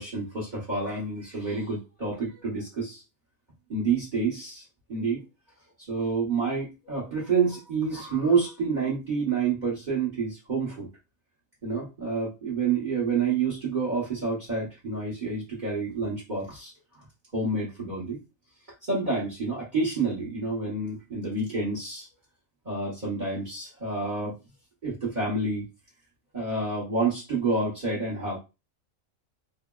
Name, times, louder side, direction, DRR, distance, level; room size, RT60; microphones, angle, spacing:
voice 1, 0.0-3.0 3.7-4.6 4.9-5.2 5.9-10.9 11.6-16.7 17.3-18.2 18.9-22.1 22.6-24.3 24.8-25.7 26.3-28.4, right 4 dB, 40° right, -5 dB, 1.0 m, -28 dB
3.6 x 2.0 x 2.2 m, 0.27 s
omnidirectional pair, 1.4 m